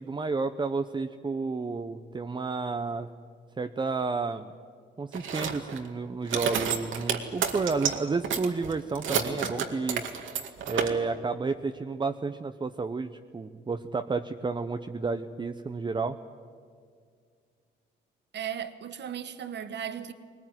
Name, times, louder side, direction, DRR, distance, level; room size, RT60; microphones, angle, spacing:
voice 1, 0.0-3.1 3.6-4.5 5.0-10.1 10.7-16.2, right 4 dB, 25° right, 0.8 m, -31 dB
sound 1, 5.1-5.9 6.3-8.0 8.2-10.9, right 7 dB, 75° right, 2.2 m, -30 dB
voice 2, 18.3-20.1, right 9 dB, 60° right, 1.4 m, -36 dB
21.0 x 20.0 x 9.6 m
cardioid pair, 90°, 20 cm